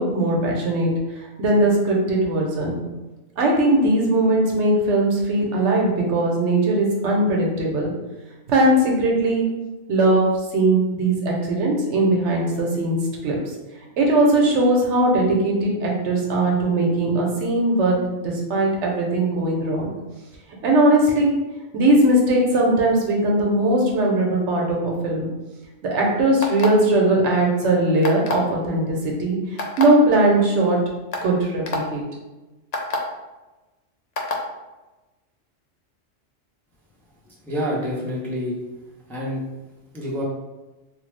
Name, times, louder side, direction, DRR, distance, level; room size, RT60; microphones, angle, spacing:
voice 1, 0.0-2.8 3.4-7.9 8.5-9.5 9.9-10.3 10.5-13.0 13.2-13.4 14.0-19.9 20.6-21.3 21.7-25.3 25.8-30.8 31.2-32.0, right 1 dB, 80° right, -1 dB, 1.0 m, -19 dB
sound 1, 26.4-26.9 28.0-28.5 29.6-29.8 30.6-30.7 31.1-31.3 31.7-31.8 32.7-33.0 34.2-34.4, left 3 dB, 60° left, 0.4 m, -26 dB
voice 2, 37.5-38.6 39.1-39.4 39.9-40.2, equal, ahead, -6 dB, 0.4 m, -27 dB
3.1 x 2.3 x 3.2 m, 1.1 s
omnidirectional pair, 1.2 m